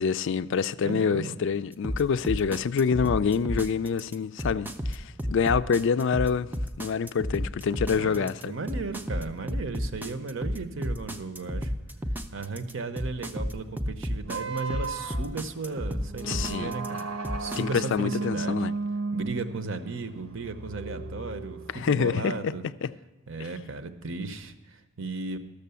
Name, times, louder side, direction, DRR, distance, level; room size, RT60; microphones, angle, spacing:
voice 1, 0.0-6.5 6.8-8.5 16.2-16.7 17.6-18.7 21.7-22.5 22.8-22.9, left 6 dB, 60° left, 0.3 m, -26 dB
voice 2, 0.8-1.4 7.9-11.7 12.3-17.0 17.4-18.7 19.1-21.6 21.8-22.6 23.3-25.4, right 3 dB, 60° right, 0.8 m, -35 dB
sound 1, 1.8-17.6, equal, 10° right, 0.5 m, -31 dB
sound 2, 14.2-22.0, right 3 dB, 85° right, 1.1 m, -35 dB
13.0 x 6.7 x 6.8 m
head